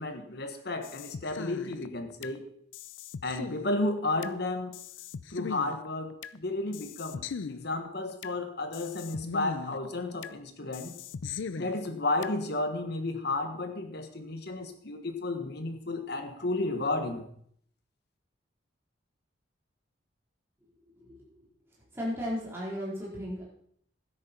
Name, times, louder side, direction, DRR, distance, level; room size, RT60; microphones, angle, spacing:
voice 1, 0.0-2.4 3.2-4.8 5.3-7.2 7.5-10.9 11.6-17.2, left 2 dB, 60° left, 7 dB, 1.5 m, -32 dB
sound 1, 0.8-2.4 2.7-4.4 4.7-6.4 6.7-8.4 8.7-10.4 10.7-12.4, left 5 dB, 85° left, 0.5 m, -40 dB
voice 2, 21.9-23.4, equal, 15° right, -6 dB, 4.0 m, -34 dB
12.5 x 10.5 x 4.4 m, 0.64 s
head